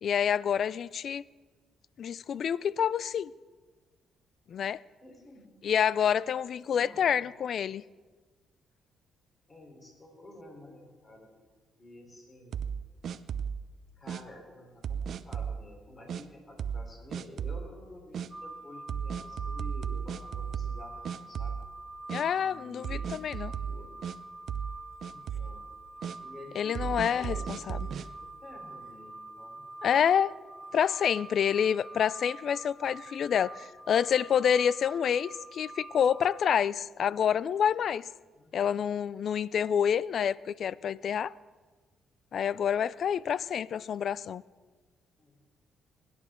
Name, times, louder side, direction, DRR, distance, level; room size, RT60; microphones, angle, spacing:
voice 1, 0.0-1.2 2.0-3.3 4.5-4.8 5.6-7.8 22.1-23.5 26.6-27.8 29.8-30.3 30.7-38.0 38.5-41.3 42.3-44.4, left 8 dB, 60° left, 0.3 m, -28 dB
voice 2, 5.0-5.5 6.7-7.0 9.5-11.3 11.8-12.6 14.0-21.6 22.4-24.0 25.1-25.6 26.2-29.6 38.4-38.7 45.2-45.4, left 1 dB, 30° left, 3.7 m, -50 dB
sound 1, 12.5-13.6 14.1-14.2 14.8-15.6 16.1-16.2 16.6-16.9 17.1-17.6 18.1-18.3 18.9-20.8 21.0-21.8 22.1-22.2 22.8-24.2 24.5-24.8 25.0-25.5 26.0-26.2 26.7-28.1, right 7 dB, 60° right, 0.6 m, -34 dB
sound 2, 18.3-36.5, right 2 dB, ahead, 2.1 m, -46 dB
23.5 x 11.0 x 3.7 m
cardioid pair, 90°, 0 cm